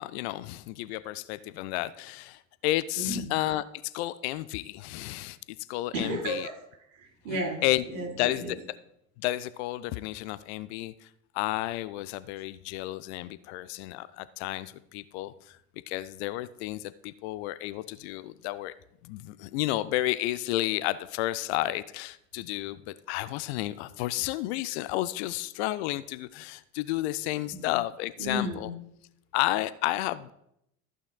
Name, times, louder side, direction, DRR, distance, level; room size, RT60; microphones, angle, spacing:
voice 1, 0.0-5.4 5.7-6.5 7.6-7.8 8.2-8.6 9.2-11.1 11.3-15.6 15.9-18.7 19.0-28.7 29.3-30.3, left 16 dB, 50° left, 16 dB, 0.5 m, -31 dB
voice 2, 3.0-3.3 5.9-6.6 6.9-8.5 27.5-27.7 28.2-28.7, equal, 60° right, -2 dB, 4.3 m, -33 dB
14.5 x 8.6 x 2.3 m, 0.76 s
figure-of-eight pair, 65°, 44 cm